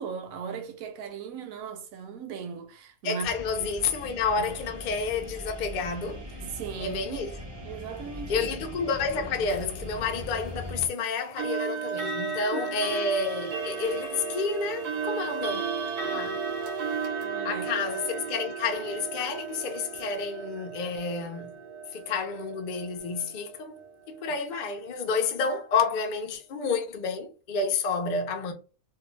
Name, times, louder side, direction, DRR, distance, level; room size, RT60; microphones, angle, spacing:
voice 1, 0.0-3.3 3.6-3.7 4.3-4.5 6.4-7.3 7.6-8.5 12.1-12.2 12.5-12.8 16.0-16.6 17.2-17.7, right 6 dB, 70° right, 1.0 m, -38 dB
voice 2, 3.0-6.2 6.8-7.4 8.3-15.7 16.0-16.4 17.4-21.6 21.9-23.7 24.1-28.5, left 4 dB, 70° left, 0.4 m, -30 dB
sound 1, 3.2-10.9, left 1 dB, 40° right, 0.3 m, -40 dB
sound 2, 9.5-9.7 11.4-24.2, right 5 dB, 90° right, 1.3 m, -34 dB
2.7 x 2.2 x 3.0 m
omnidirectional pair, 1.6 m